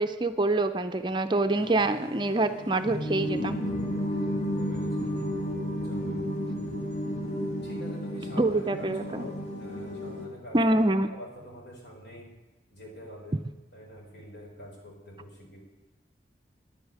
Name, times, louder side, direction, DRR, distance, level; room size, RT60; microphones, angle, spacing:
voice 1, 0.0-3.6 8.4-9.2 10.5-11.1, right 2 dB, 25° right, 8 dB, 0.5 m, -25 dB
sound 1, 1.5-10.2, equal, 40° left, 3.5 m, -32 dB
voice 2, 4.6-5.1 5.6-6.3 7.6-10.8 11.1-12.3 12.7-13.4 13.7-15.6, equal, 70° left, -2 dB, 4.7 m, -45 dB
10.5 x 8.3 x 9.7 m, 1.1 s
head